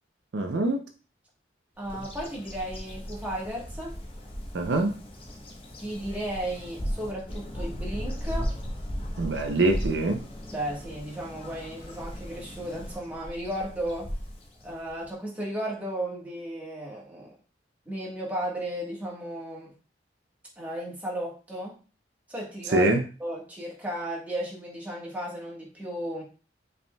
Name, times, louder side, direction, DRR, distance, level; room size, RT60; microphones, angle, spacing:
voice 1, 0.3-0.8 4.5-5.0 9.2-10.2 22.7-23.0, right 2 dB, 70° right, 0.5 m, -24 dB
Bird vocalization bird call bird song, 1.8-15.1, equal, 30° left, 0.8 m, -37 dB
voice 2, 1.8-4.0 5.8-8.6 10.5-14.1 14.6-17.3 17.9-19.7 20.6-21.8 22.3-22.9 23.2-26.2, right 1 dB, 10° right, 1.3 m, -34 dB
5.0 x 3.4 x 2.2 m
head